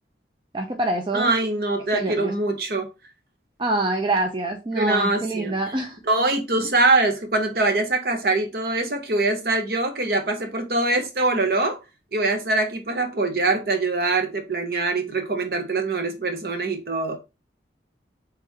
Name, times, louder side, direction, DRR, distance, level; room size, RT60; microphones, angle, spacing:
voice 1, 0.5-1.3 1.9-2.3 3.6-6.0, right 2 dB, 25° right, 0.5 m, -25 dB
voice 2, 1.1-2.9 4.7-5.5 6.1-11.8 12.1-17.2, right 2 dB, 55° right, 0.8 m, -23 dB
3.7 x 3.3 x 3.1 m
head